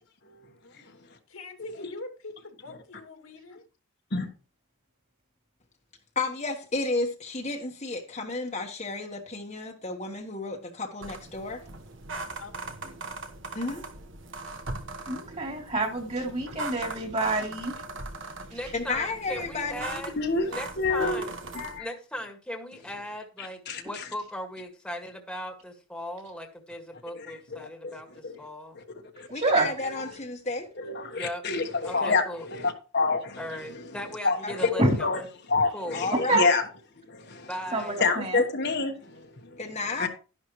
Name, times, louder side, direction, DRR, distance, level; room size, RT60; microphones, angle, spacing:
voice 1, 0.6-1.0 1.3-3.6 12.4-13.0, left 2 dB, 75° left, 2.4 m, -44 dB
voice 2, 6.1-11.6 13.5-13.8 18.7-20.0 29.3-30.7 34.4-34.5 35.9-36.6 39.6-40.1, left 3 dB, 30° left, 1.4 m, -32 dB
sound 1, 11.0-21.8, right 3 dB, 55° right, 1.3 m, -39 dB
voice 3, 15.1-17.7 18.5-18.6 29.3-29.7 34.8-34.9 36.1-36.5 37.7-38.4, right 2 dB, 30° right, 3.1 m, -27 dB
voice 4, 18.5-20.1 20.5-21.3 21.8-28.8 31.1-31.4 31.8-32.5 33.4-35.2 35.7-36.0 37.5-38.0, equal, 5° left, 1.9 m, -38 dB
voice 5, 20.2-20.5 20.8-21.2 21.5-21.7 23.7-23.8 27.8-27.9 28.2-28.3 28.7-28.8 29.2-29.3 30.8-32.2 32.5-33.4 34.2-34.7 35.0-35.2 35.5-36.6 37.1-37.5 38.0-39.5 40.0-40.1, left 4 dB, 50° left, 1.4 m, -27 dB
12.5 x 11.0 x 3.1 m
head